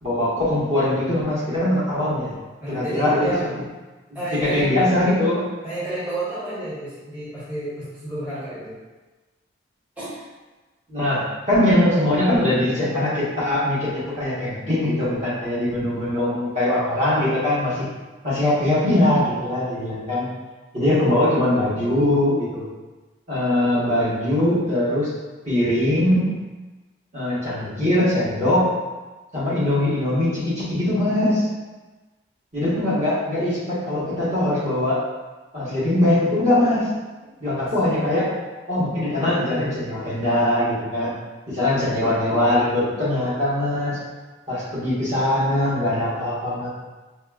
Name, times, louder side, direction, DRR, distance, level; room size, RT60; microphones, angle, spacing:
voice 1, 0.0-2.3 2.7-3.4 4.1-5.5 10.9-17.9 18.2-20.3 20.7-22.6 23.3-25.1 25.5-26.4 27.1-28.7 29.3-31.5 32.5-35.0 35.5-36.9 37.4-38.3 38.7-41.1 41.5-44.0 44.5-46.7, left 1 dB, 35° right, -10 dB, 1.1 m, -21 dB
voice 2, 2.6-3.5 4.1-4.8 5.6-8.8 10.0-10.2 37.4-37.7, right 1 dB, 10° right, -13 dB, 0.8 m, -30 dB
4.9 x 2.0 x 2.3 m, 1.2 s
head